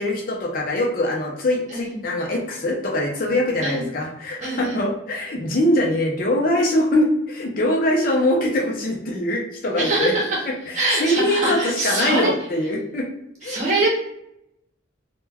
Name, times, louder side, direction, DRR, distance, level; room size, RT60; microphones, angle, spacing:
voice 1, 0.0-10.1 10.7-13.1 13.4-13.6, left 1 dB, 45° left, -1 dB, 0.5 m, -22 dB
voice 2, 1.7-2.0 3.6-3.8 4.4-4.8 9.8-10.4 10.7-12.3 13.4-13.9, right 2 dB, 40° right, -5 dB, 0.7 m, -23 dB
2.2 x 2.2 x 3.3 m, 0.79 s
head